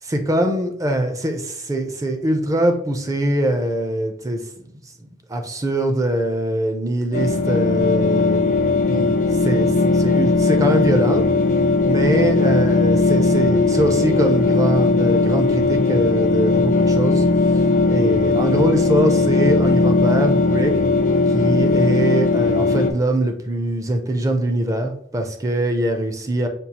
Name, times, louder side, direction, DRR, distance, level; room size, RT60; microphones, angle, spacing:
voice 1, 0.0-4.7 5.0-8.5 8.9-11.2 11.8-17.2 17.5-20.7 21.3-26.5, right 1 dB, 20° right, 5 dB, 0.4 m, -22 dB
Drone Pad, 7.1-22.9, left 3 dB, 45° left, 0.4 m, -18 dB
5.3 x 2.4 x 2.8 m, 0.65 s
head